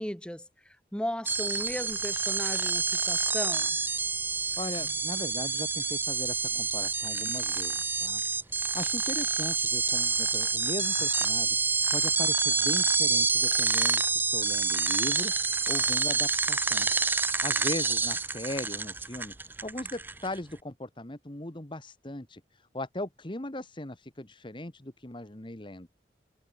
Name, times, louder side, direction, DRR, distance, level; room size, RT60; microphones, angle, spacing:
voice 1, 0.0-3.8, equal, 5° left, 3.3 m, -36 dB
sound 1, 1.2-20.4, right 4 dB, 10° right, 0.4 m, -28 dB
voice 2, 4.6-16.9 17.2-25.9, left 1 dB, 25° left, 1.5 m, -39 dB
head